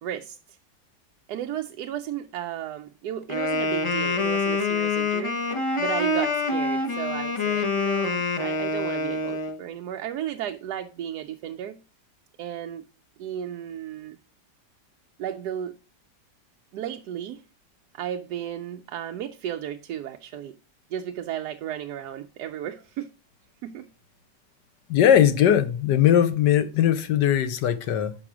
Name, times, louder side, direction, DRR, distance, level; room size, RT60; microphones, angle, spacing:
voice 1, 0.0-0.6 1.3-5.4 5.8-11.8 12.4-12.8 13.2-14.2 15.2-15.8 16.7-17.4 17.9-20.5 20.9-23.1 23.6-23.9, right 10 dB, 75° right, 1.0 m, -34 dB
Wind instrument woodwind instrument, 3.3-9.6, left 3 dB, 45° left, 0.3 m, -26 dB
voice 2, 24.9-28.2, left 10 dB, 75° left, 1.4 m, -20 dB
6.1 x 5.7 x 5.9 m
omnidirectional pair, 1.9 m